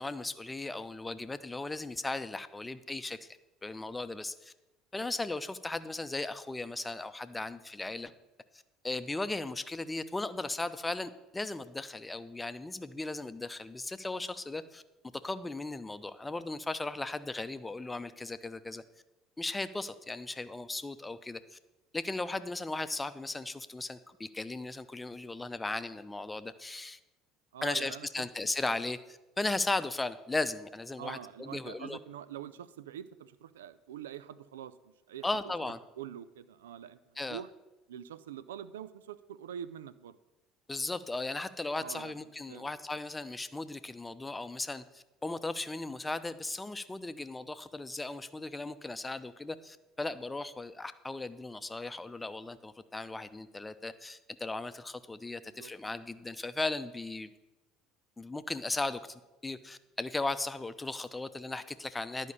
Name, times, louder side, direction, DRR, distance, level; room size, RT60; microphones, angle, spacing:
voice 1, 0.0-4.5 4.9-8.1 8.5-14.8 15.2-18.8 19.4-21.6 21.9-27.0 27.6-32.0 35.2-35.8 37.2-37.4 40.7-57.3 58.2-62.3, left 2 dB, 15° left, 12 dB, 0.8 m, -37 dB
voice 2, 27.5-28.3 31.0-35.3 36.0-37.0 37.3-37.5 37.9-40.2 41.8-42.1 42.5-42.7 55.4-55.7, right 10 dB, 80° right, 15 dB, 0.5 m, -45 dB
11.0 x 5.4 x 8.2 m, 1.0 s
hypercardioid pair, 65°, 0 cm